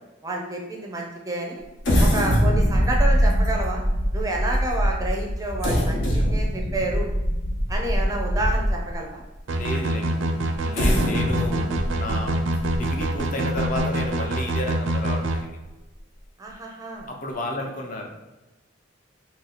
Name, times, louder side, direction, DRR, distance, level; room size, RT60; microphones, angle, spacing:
voice 1, 0.2-1.6 2.0-3.8 4.1-7.1 7.7-9.2 11.0-11.1 16.4-17.1, right 2 dB, 20° right, 0 dB, 0.4 m, -29 dB
sound 1, 1.8-9.0 9.5-9.6 10.5-14.1 14.5-14.6 15.0-15.3, equal, 70° left, 0.9 m, -23 dB
voice 2, 9.5-12.3 12.7-15.7 17.1-18.1, left 1 dB, 40° left, 2 dB, 0.5 m, -32 dB
sound 2, 9.5-15.4, right 1 dB, 80° right, 0.4 m, -25 dB
3.0 x 2.7 x 4.0 m, 1.1 s
head